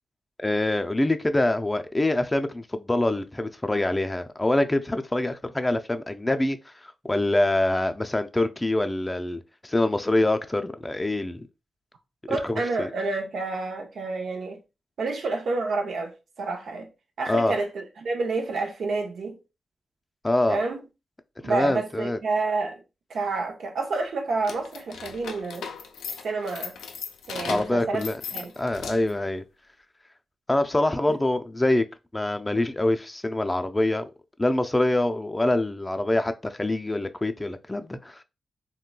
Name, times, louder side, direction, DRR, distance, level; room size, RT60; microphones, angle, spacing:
voice 1, 0.4-11.5 12.4-12.9 17.3-17.5 20.2-20.6 21.4-22.2 27.5-28.2 28.6-29.4 30.5-31.8 32.1-34.1 34.4-38.2, left 1 dB, 25° left, 0.4 m, -25 dB
voice 2, 12.3-14.6 15.0-16.9 17.2-19.4 20.5-20.8 21.4-22.8 23.1-25.7 26.2-26.7 27.3-28.0 28.3-28.5 31.1-31.2, right 3 dB, 75° right, 0.6 m, -29 dB
sound 1, 24.4-29.2, left 6 dB, 90° left, 0.3 m, -37 dB
3.7 x 2.2 x 2.2 m
supercardioid pair, 40°, 0 cm